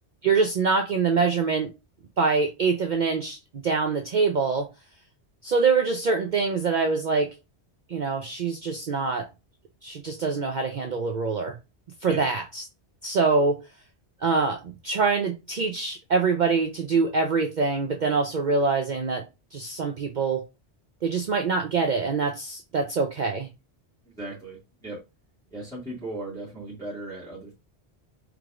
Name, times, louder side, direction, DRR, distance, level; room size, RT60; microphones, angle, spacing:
voice 1, 0.2-1.7 2.2-4.7 5.4-7.3 7.9-9.3 9.8-11.6 12.0-12.6 13.0-13.6 14.2-19.2 19.5-20.4 21.0-23.5, right 4 dB, 50° right, 0.6 m, -24 dB
voice 2, 24.0-25.0 25.5-27.6, right 2 dB, 5° left, 1.9 m, -37 dB
4.7 x 3.3 x 2.4 m
omnidirectional pair, 1.1 m